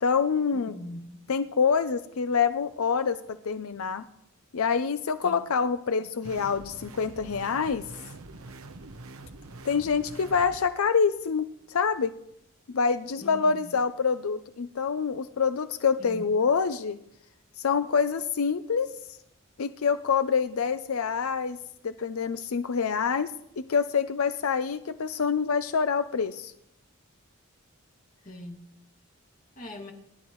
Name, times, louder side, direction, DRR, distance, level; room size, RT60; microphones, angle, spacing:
voice 1, 0.0-0.8 1.3-4.1 4.5-7.8 9.6-12.1 12.7-17.0 17.6-18.9 19.6-21.6 21.8-26.5, left 6 dB, 85° left, 11 dB, 0.6 m, -26 dB
voice 2, 0.5-1.2 5.2-5.4 13.2-13.8 16.0-16.3 28.2-28.7 29.6-29.9, left 1 dB, 40° left, 1 dB, 2.2 m, -42 dB
sound 1, 6.2-10.6, right 2 dB, 90° right, 0.9 m, -44 dB
28.5 x 11.5 x 3.1 m, 0.80 s
head